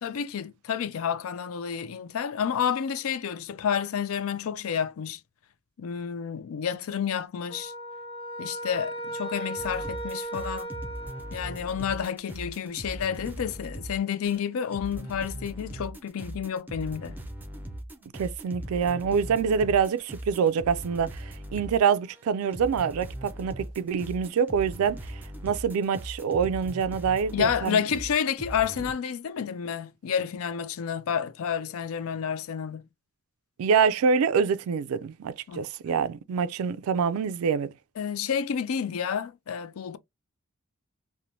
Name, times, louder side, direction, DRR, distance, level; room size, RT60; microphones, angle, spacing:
voice 1, 0.0-5.2 5.8-7.7 8.4-10.7 11.3-17.2 27.3-32.8 35.5-35.6 38.0-40.0, left 7 dB, 75° left, 0.4 m, -30 dB
sound 1, 7.5-11.9, right 1 dB, 25° left, 1.1 m, -37 dB
sound 2, 9.6-21.8 22.1-28.9, right 1 dB, 10° right, 0.5 m, -40 dB
voice 2, 18.1-27.8 33.6-37.7, right 6 dB, 85° right, 0.3 m, -26 dB
3.0 x 2.1 x 2.6 m
head